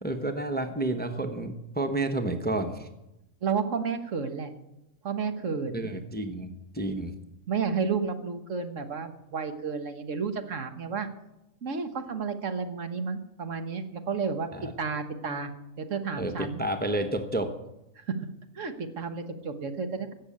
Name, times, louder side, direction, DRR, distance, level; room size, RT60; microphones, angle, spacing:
voice 1, 0.0-2.9 5.7-7.1 14.5-14.7 16.2-17.5, right 2 dB, 10° left, 7 dB, 0.8 m, -30 dB
voice 2, 3.4-4.5 5.0-5.9 7.5-11.1 11.6-14.5 14.8-15.5 15.8-16.6 18.1-18.2 18.5-20.1, right 5 dB, 65° right, 7 dB, 1.5 m, -31 dB
16.0 x 6.7 x 8.6 m, 0.92 s
omnidirectional pair, 1.5 m